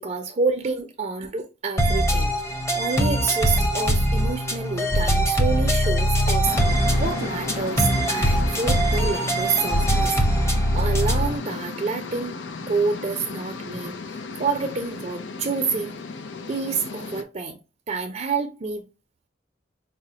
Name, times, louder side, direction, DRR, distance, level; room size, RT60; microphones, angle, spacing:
voice 1, 0.0-2.3 2.7-6.5 7.0-10.2 10.7-12.4 12.7-14.0 14.4-15.9 16.5-17.6 17.9-18.8, right 4 dB, 40° right, 0.5 m, -28 dB
sound 1, 1.8-11.4, equal, 15° left, 0.7 m, -22 dB
sound 2, 6.4-17.2, left 4 dB, 80° left, 0.5 m, -35 dB
4.8 x 2.0 x 2.8 m
head